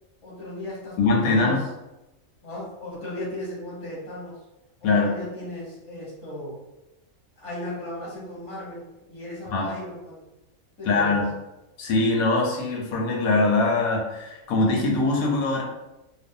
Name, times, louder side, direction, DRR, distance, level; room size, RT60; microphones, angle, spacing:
voice 1, 0.2-1.6 2.4-4.4 4.8-6.6 7.4-10.2 10.8-11.2, left 1 dB, 30° left, -5 dB, 0.7 m, -36 dB
voice 2, 1.0-1.6 4.8-5.1 9.5-9.6 10.8-11.2 11.8-15.6, left 3 dB, 85° left, -1 dB, 1.1 m, -22 dB
2.6 x 2.1 x 2.6 m, 0.97 s
omnidirectional pair, 1.5 m